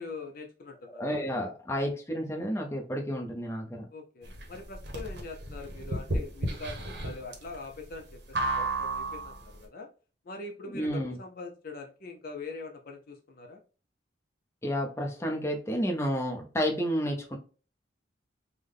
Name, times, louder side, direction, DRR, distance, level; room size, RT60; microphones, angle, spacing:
voice 1, 0.0-1.2 3.9-9.9 10.2-13.6, left 3 dB, 50° left, 3 dB, 0.5 m, -43 dB
voice 2, 1.0-3.8 10.7-11.2 14.6-17.4, equal, 15° left, 1 dB, 0.7 m, -31 dB
sound 1, 4.2-9.5, right 2 dB, 60° right, 0.8 m, -33 dB
3.3 x 2.1 x 3.7 m, 0.37 s
head